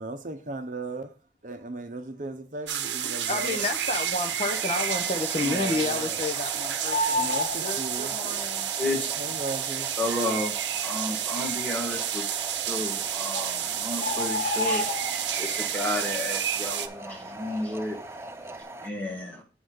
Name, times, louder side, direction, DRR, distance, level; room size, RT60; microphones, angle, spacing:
voice 1, 0.0-3.7 5.4-6.2 7.1-8.1 9.2-9.9, right 2 dB, 45° right, 0.8 m, -36 dB
sound 1, 2.7-16.9, right 9 dB, 85° right, 0.7 m, -30 dB
voice 2, 3.3-7.3 7.6-8.7, left 3 dB, 35° left, 0.8 m, -31 dB
sound 2, 3.6-18.9, right 2 dB, 15° right, 0.4 m, -41 dB
Bird, 3.9-4.5 4.9-5.0 5.2-6.4 6.7-8.5 9.4-9.5 10.1-10.2 10.4-10.5 11.1-11.6 12.6-12.7 13.0-13.1 13.3-15.6 16.0-16.3 16.6-18.0 18.3-18.6, left 2 dB, 70° left, 1.2 m, -31 dB
voice 3, 8.8-9.2 10.0-10.5 10.8-12.3 12.7-19.4, left 1 dB, 10° left, 1.9 m, -32 dB
7.8 x 4.1 x 6.4 m
head